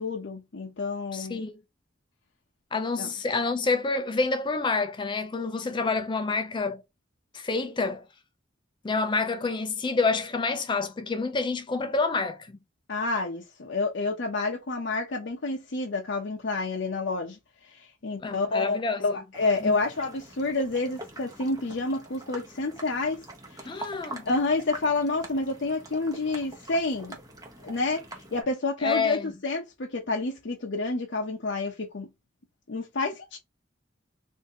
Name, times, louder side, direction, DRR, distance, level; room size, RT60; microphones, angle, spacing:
voice 1, 0.0-1.4 3.0-3.1 12.9-23.8 24.3-27.2 27.6-32.1 32.7-33.4, left 3 dB, 65° left, 0.7 m, -29 dB
voice 2, 1.1-1.6 2.7-6.8 7.3-8.1 8.8-12.5 18.2-19.0 19.6-19.8 23.6-24.3 28.8-29.3, left 4 dB, 25° left, 0.4 m, -28 dB
sound 1, 19.3-28.4, right 2 dB, 20° right, 0.9 m, -44 dB
3.5 x 2.6 x 2.5 m
head